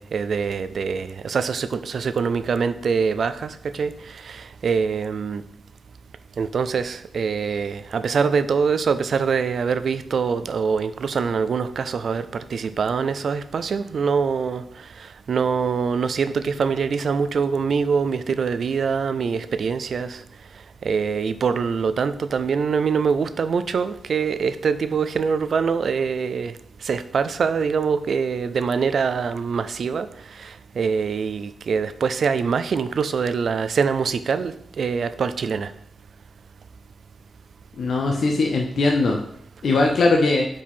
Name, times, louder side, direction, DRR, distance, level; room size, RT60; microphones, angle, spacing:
voice 1, 0.0-5.4 6.4-20.2 20.8-26.5 26.8-35.7, right 5 dB, 55° right, 13 dB, 0.4 m, -24 dB
voice 2, 37.8-39.2 39.6-40.5, left 3 dB, 50° left, 1 dB, 0.6 m, -20 dB
5.0 x 4.4 x 5.3 m, 0.71 s
wide cardioid pair, 160°, 0 cm